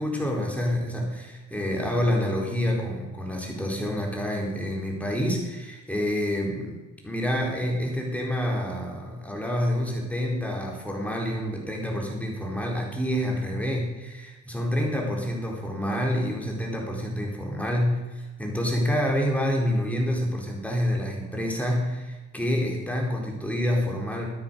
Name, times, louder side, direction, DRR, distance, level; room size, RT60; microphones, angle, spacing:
voice 1, 0.0-24.3, equal, 5° left, -1 dB, 4.2 m, -28 dB
13.0 x 9.6 x 6.9 m, 1.2 s
cardioid pair, 90°, 30 cm